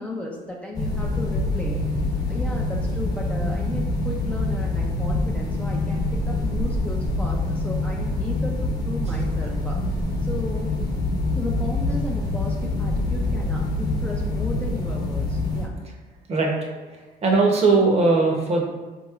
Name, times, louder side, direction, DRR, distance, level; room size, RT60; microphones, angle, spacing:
voice 1, 0.0-10.7 11.4-15.8, left 1 dB, 5° left, -3 dB, 0.4 m, -35 dB
sound 1, 0.7-15.7, left 2 dB, 25° left, 0.8 m, -25 dB
voice 2, 16.3-18.6, right 3 dB, 40° right, 0 dB, 0.7 m, -20 dB
4.0 x 2.9 x 2.4 m, 1.3 s
cardioid pair, 110°, 17 cm